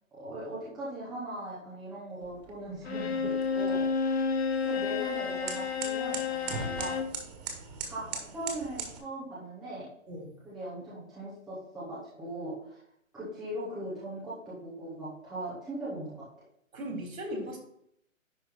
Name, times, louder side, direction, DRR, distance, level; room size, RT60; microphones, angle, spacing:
voice 1, 0.1-4.1 4.6-7.0 7.8-8.0 8.3-9.8 10.4-12.8 13.1-16.2, right 1 dB, ahead, -11 dB, 0.6 m, -39 dB
sound 1, 2.2-9.0, right 5 dB, 30° right, 1.5 m, -41 dB
Bowed string instrument, 2.9-7.2, left 5 dB, 50° left, 1.1 m, -30 dB
voice 2, 16.7-17.6, equal, 80° right, 2 dB, 3.6 m, -37 dB
10.5 x 3.5 x 5.2 m, 0.72 s
hypercardioid pair, 155°, 41 cm